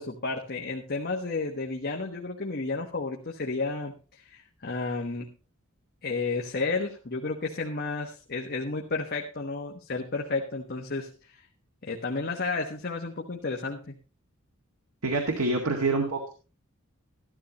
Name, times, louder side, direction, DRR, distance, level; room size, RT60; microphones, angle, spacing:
voice 1, 0.0-5.3 6.0-11.4 11.8-13.9, left 3 dB, 45° left, 1 dB, 1.2 m, -32 dB
voice 2, 15.0-16.4, right 3 dB, 90° right, 2 dB, 2.0 m, -26 dB
14.0 x 12.5 x 3.0 m, 0.34 s
head